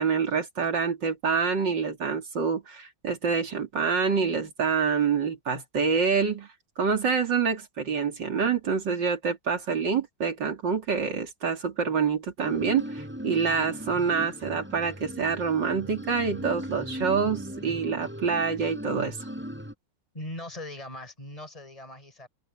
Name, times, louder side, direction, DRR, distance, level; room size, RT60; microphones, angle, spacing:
voice 1, 0.0-6.5 6.8-19.2, right 5 dB, 85° right, 3.5 m, -26 dB
sound 1, 12.4-19.7, equal, 5° right, 4.4 m, -38 dB
voice 2, 20.1-22.3, left 1 dB, 20° left, 5.8 m, -40 dB
open air
omnidirectional pair, 1.9 m